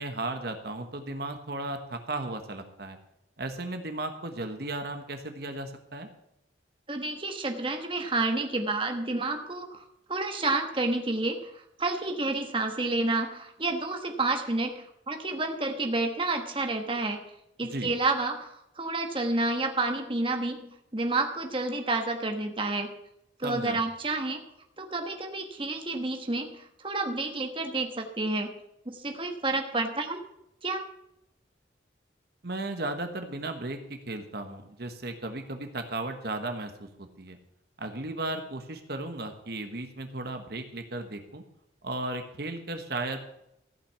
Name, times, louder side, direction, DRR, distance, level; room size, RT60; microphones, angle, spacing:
voice 1, 0.0-3.0 3.4-6.1 17.7-17.9 23.4-23.8 32.4-36.7 37.0-37.4 37.8-41.4 41.8-43.2, right 2 dB, 55° right, 6 dB, 1.2 m, -35 dB
voice 2, 6.9-9.8 10.1-17.2 17.6-22.9 23.4-24.4 24.8-28.5 28.9-30.2 30.6-30.9, right 2 dB, 25° right, 4 dB, 1.2 m, -30 dB
15.0 x 5.9 x 8.0 m, 0.80 s
head